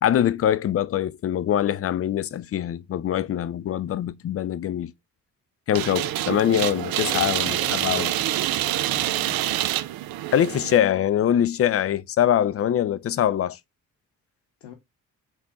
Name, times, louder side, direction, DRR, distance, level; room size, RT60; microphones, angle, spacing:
voice 1, 0.0-4.9 5.7-8.2 10.3-13.6, left 10 dB, 35° left, 0.4 m, -23 dB
sound 1, 5.7-10.8, right 13 dB, 60° right, 0.5 m, -26 dB
voice 2, 7.0-8.2 8.6-9.4 11.2-11.3 14.6-14.7, left 8 dB, 80° left, 0.9 m, -42 dB
3.7 x 2.7 x 3.5 m
hypercardioid pair, 40°, 42 cm